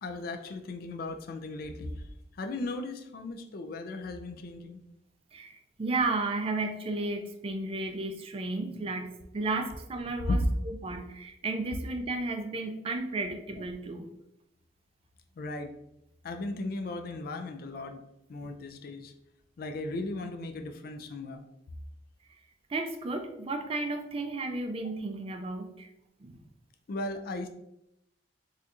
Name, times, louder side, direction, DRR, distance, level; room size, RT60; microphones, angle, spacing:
voice 1, 0.0-2.1 2.4-4.8 10.3-10.4 15.4-15.7 16.2-18.0 18.3-19.1 19.6-21.4 26.9-27.5, left 2 dB, 55° left, 6 dB, 0.3 m, -36 dB
voice 2, 5.3-14.1 18.4-18.5 22.7-25.9 26.2-26.4, right 2 dB, 30° right, 5 dB, 0.4 m, -33 dB
4.2 x 2.4 x 2.5 m, 0.82 s
head